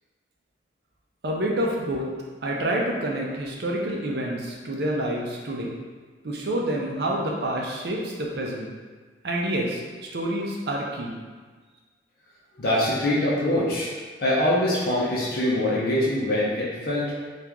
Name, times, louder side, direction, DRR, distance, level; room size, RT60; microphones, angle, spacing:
voice 1, 1.2-2.1 2.4-5.7 6.2-8.7 9.2-9.8 10.1-11.2, right 1 dB, 60° right, -2 dB, 0.5 m, -28 dB
voice 2, 12.5-13.9 14.2-17.1, left 1 dB, 55° left, -7 dB, 0.6 m, -23 dB
2.9 x 2.4 x 3.5 m, 1.4 s
head